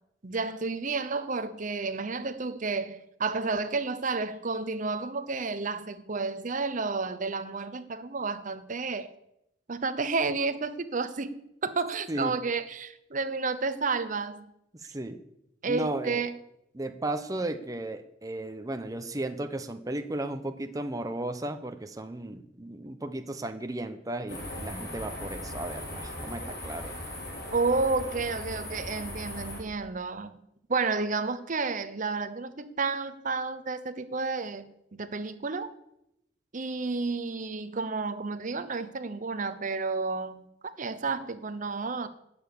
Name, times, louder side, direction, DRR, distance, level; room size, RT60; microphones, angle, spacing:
voice 1, 0.2-9.1 9.7-14.5 15.6-16.3 27.5-30.3 30.7-35.7 36.5-42.1, right 4 dB, 45° right, 0.8 m, -31 dB
voice 2, 14.8-15.2 15.6-16.2 16.7-27.0, right 1 dB, 20° right, 0.8 m, -35 dB
sound 1, 24.3-29.6, left 1 dB, 60° left, 4.5 m, -38 dB
17.0 x 7.0 x 6.9 m
head